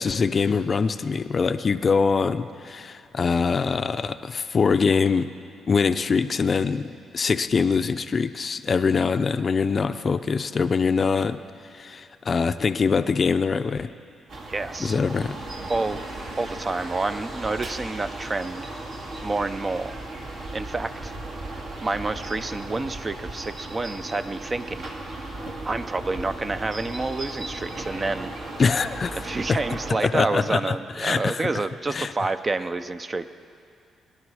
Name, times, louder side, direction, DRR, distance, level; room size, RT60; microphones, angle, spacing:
voice 1, 0.0-5.3 5.7-11.4 11.7-13.9 14.8-15.4 28.6-29.2 29.5-29.6 30.0-30.6 31.0-31.5 31.9-32.1, left 5 dB, 40° left, 11 dB, 0.5 m, -23 dB
sound 1, 14.3-29.9, right 2 dB, 60° right, 2.1 m, -36 dB
voice 2, 14.5-15.0 15.7-16.0 16.4-18.7 19.2-19.9 20.5-21.1 21.8-24.9 25.6-28.3 29.1-33.3, right 3 dB, 25° right, 11 dB, 0.5 m, -28 dB
22.0 x 10.5 x 4.8 m, 2.5 s
cardioid pair, 90°, 0 cm